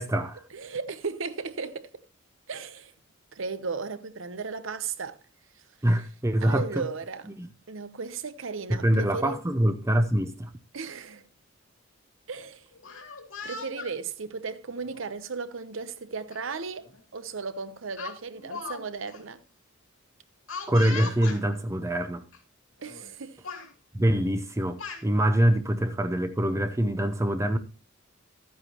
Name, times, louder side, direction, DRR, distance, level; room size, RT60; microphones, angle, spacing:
voice 1, 0.0-0.4 5.8-6.8 7.4-7.5 8.7-10.5 20.7-22.2 23.9-27.6, right 1 dB, 15° right, 0.6 m, -24 dB
voice 2, 0.5-2.0 2.5-2.9 3.3-5.2 6.4-7.3 7.7-9.4 10.7-11.3 12.3-12.7 13.4-19.4 22.8-23.4, right 4 dB, 65° right, 0.8 m, -35 dB
Speech, 12.7-13.9 14.8-15.0 16.3-16.4 16.8-17.0 18.0-18.8 19.1-19.2 20.5-21.4 22.3-22.4 22.8-23.1 23.4-23.7 24.5-25.0, left 5 dB, 80° left, 2.6 m, -39 dB
13.0 x 9.4 x 2.9 m
head